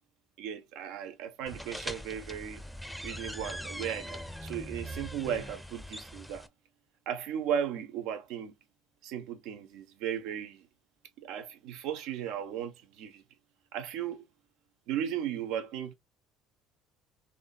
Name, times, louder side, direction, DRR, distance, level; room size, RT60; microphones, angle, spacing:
voice 1, 0.4-2.6 3.0-6.5 7.1-8.5 9.0-10.6 11.2-13.2 13.7-14.2 14.9-15.9, right 9 dB, 75° right, 0.9 m, -36 dB
sound 1, 1.5-6.5, equal, ahead, 0.6 m, -41 dB
3.7 x 2.7 x 2.3 m
hypercardioid pair, 70°, 0 cm